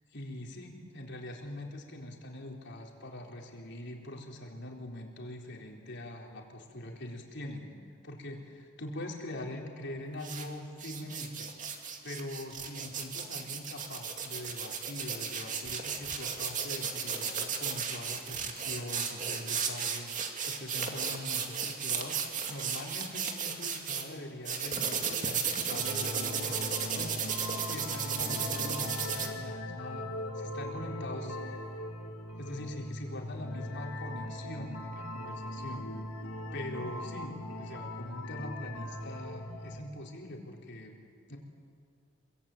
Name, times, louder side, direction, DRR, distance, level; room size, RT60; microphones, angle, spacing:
voice 1, 0.1-7.7 8.0-11.5 12.0-30.1 30.3-31.7 32.4-35.9 36.5-41.0 41.3-41.4, left 1 dB, 55° left, 0 dB, 4.0 m, -43 dB
sound 1, 10.2-10.5 10.8-24.0 24.5-29.3, right 6 dB, 35° right, 2.4 m, -34 dB
sound 2, 25.7-39.8, left 1 dB, 90° left, 2.6 m, -40 dB
27.0 x 23.5 x 9.2 m, 2.3 s
head